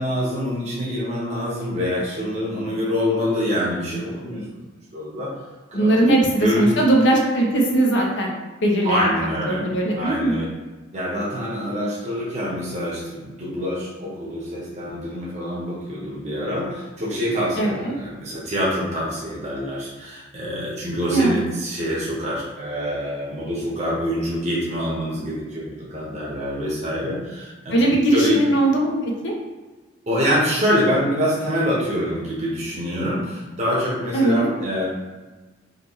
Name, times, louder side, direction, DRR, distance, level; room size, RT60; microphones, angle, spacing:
voice 1, 0.0-4.4 4.9-5.3 5.7-6.1 6.4-6.7 8.8-9.6 10.0-10.5 10.9-27.7 28.1-28.4 30.1-34.8, equal, 35° right, -5 dB, 1.0 m, -25 dB
voice 2, 5.7-8.3 8.6-9.1 9.5-10.4 17.6-17.9 21.1-21.4 27.7-29.3 34.1-34.5, right 1 dB, 70° left, -1 dB, 0.8 m, -19 dB
4.1 x 3.0 x 3.1 m, 1.2 s
head